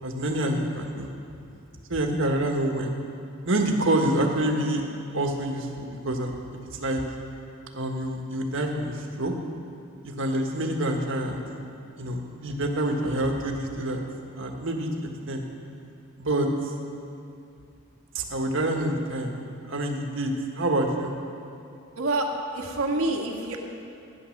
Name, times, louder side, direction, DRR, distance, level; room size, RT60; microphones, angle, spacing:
voice 1, 0.0-1.1 1.9-3.0 3.4-4.8 5.1-6.4 6.7-7.0 7.7-9.3 10.0-11.4 12.0-14.0 14.4-15.5 16.2-16.7 18.1-19.4 19.7-21.1, right 1 dB, 65° right, 2 dB, 1.6 m, -27 dB
voice 2, 21.9-23.6, right 2 dB, 85° right, 1 dB, 1.7 m, -27 dB
15.5 x 9.9 x 6.5 m, 2.6 s
head